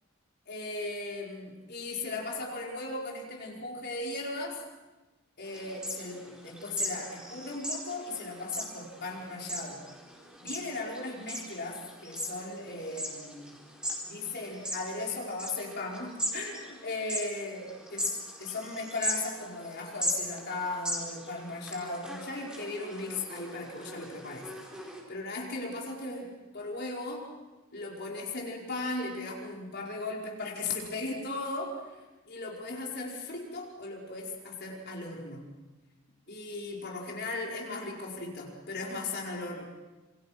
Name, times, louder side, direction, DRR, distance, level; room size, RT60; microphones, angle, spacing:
voice 1, 0.5-4.6 5.4-9.8 10.4-13.6 14.0-18.1 18.4-24.5 25.1-26.3 26.5-27.3 27.7-32.0 32.3-35.5 36.3-39.6, left 2 dB, 50° left, -2 dB, 5.2 m, -37 dB
sound 1, 5.5-25.0, equal, 5° right, 4.5 m, -39 dB
27.5 x 27.0 x 6.1 m, 1.2 s
head